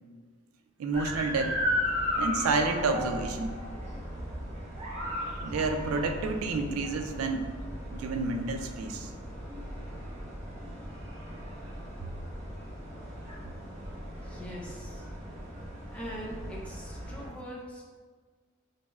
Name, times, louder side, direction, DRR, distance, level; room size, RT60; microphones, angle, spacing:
voice 1, 0.8-1.6 2.2-3.5 5.2-7.5 7.9-9.1 12.0-12.1, right 3 dB, 85° right, 6 dB, 0.4 m, -30 dB
sound 1, 0.9-17.3, equal, 35° right, 1.0 m, -36 dB
voice 2, 14.2-15.0 15.9-17.9, equal, 5° left, -4 dB, 0.6 m, -42 dB
5.1 x 2.0 x 2.3 m, 1.5 s
head